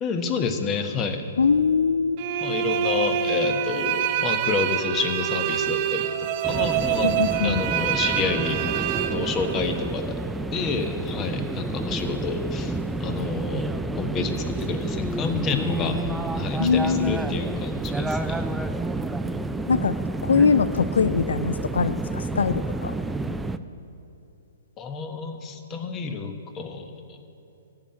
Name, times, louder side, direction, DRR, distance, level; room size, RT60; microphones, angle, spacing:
voice 1, 0.0-1.3 2.4-7.1 7.4-10.2 10.5-13.7 13.9-16.0 16.3-18.4 24.8-27.2, left 5 dB, 25° left, 7 dB, 1.1 m, -29 dB
voice 2, 1.4-2.2 7.0-7.6 16.6-17.2 19.7-20.0 20.2-22.9, left 5 dB, 80° left, 13 dB, 0.3 m, -22 dB
sound 1, 2.2-9.9, right 10 dB, 40° right, 0.7 m, -26 dB
sound 2, 6.4-23.6, right 2 dB, 5° right, 0.4 m, -29 dB
14.0 x 5.8 x 8.8 m, 2.7 s
hypercardioid pair, 130°, 0 cm